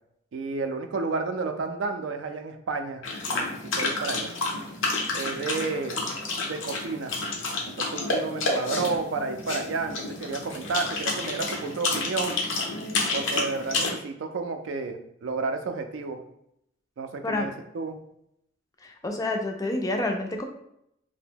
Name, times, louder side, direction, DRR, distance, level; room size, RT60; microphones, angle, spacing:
voice 1, 0.3-3.5 3.8-4.3 5.1-6.0 6.5-7.2 7.7-12.4 13.1-16.2 17.0-18.0, right 4 dB, 75° right, 6 dB, 0.4 m, -31 dB
sound 1, 3.0-13.9, left 3 dB, 90° left, 0.7 m, -30 dB
voice 2, 18.8-20.4, left 2 dB, 20° left, 3 dB, 0.3 m, -28 dB
2.8 x 2.1 x 3.5 m, 0.76 s
head